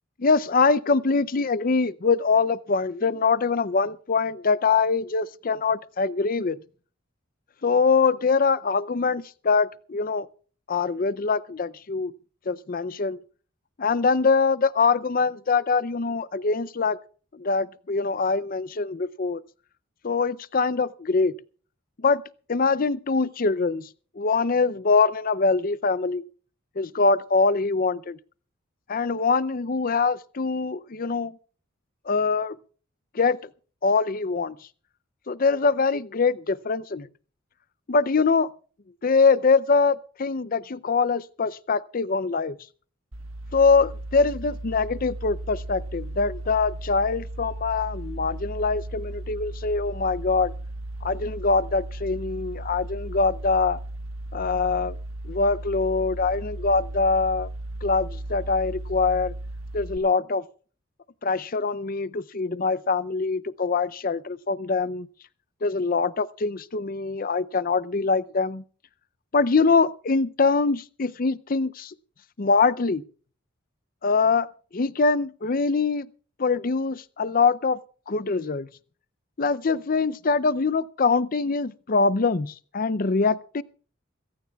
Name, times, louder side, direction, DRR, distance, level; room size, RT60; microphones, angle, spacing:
voice 1, 0.2-6.6 7.6-10.3 10.7-12.1 12.5-13.2 13.8-17.0 17.3-19.4 20.0-21.3 22.0-22.2 22.5-23.9 24.2-26.2 26.8-28.2 28.9-31.4 32.1-32.6 33.1-33.4 33.8-34.6 35.3-37.1 37.9-38.5 39.0-42.6 43.5-50.5 51.0-53.8 54.3-54.9 55.2-57.5 57.8-59.3 59.7-60.4 61.2-65.1 65.6-68.6 69.3-71.9 72.4-73.0 74.0-74.5 74.7-76.1 76.4-77.8 78.1-78.7 79.4-83.6, left 4 dB, 45° left, 0.5 m, -23 dB
sound 1, 43.1-60.0, right 1 dB, 90° right, 1.4 m, -36 dB
24.0 x 16.0 x 2.4 m
head